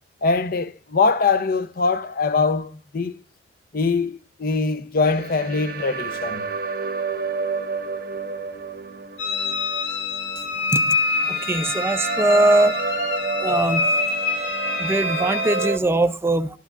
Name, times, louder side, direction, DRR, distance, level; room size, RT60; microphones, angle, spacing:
voice 1, 0.2-3.2 3.7-6.5, left 4 dB, 55° left, 0.6 m, -22 dB
sound 1, 5.0-15.8, right 5 dB, 60° right, 0.7 m, -29 dB
sound 2, 9.2-15.7, left 4 dB, 85° left, 1.2 m, -26 dB
voice 2, 11.5-12.7 13.4-13.9 14.8-16.5, right 1 dB, 15° right, 0.4 m, -20 dB
12.5 x 11.5 x 2.4 m
head